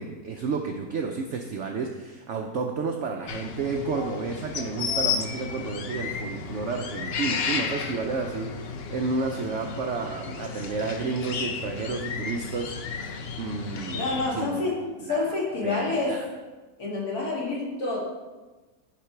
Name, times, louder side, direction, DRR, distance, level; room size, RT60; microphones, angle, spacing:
voice 1, 0.0-13.1 13.4-14.0 14.3-14.7 15.0-15.3 15.6-16.3, right 4 dB, 70° right, 3 dB, 0.7 m, -31 dB
sound 1, 3.3-14.3, left 5 dB, 80° left, 0.5 m, -33 dB
voice 2, 13.9-16.2 16.8-18.0, left 3 dB, 65° left, -4 dB, 2.4 m, -28 dB
10.0 x 4.2 x 4.5 m, 1.2 s
omnidirectional pair, 1.8 m